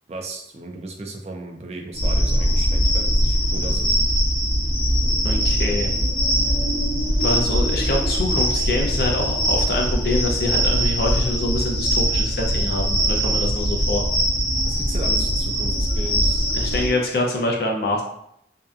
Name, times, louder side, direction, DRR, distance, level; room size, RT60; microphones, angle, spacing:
voice 1, 0.1-4.0 14.7-16.5, right 2 dB, 35° right, 2 dB, 0.3 m, -35 dB
sound 1, 1.9-16.9, equal, 5° left, 0.7 m, -21 dB
voice 2, 5.2-5.9 7.2-14.0 16.5-18.0, left 2 dB, 60° left, 0 dB, 0.5 m, -25 dB
2.7 x 2.2 x 2.3 m, 0.74 s
head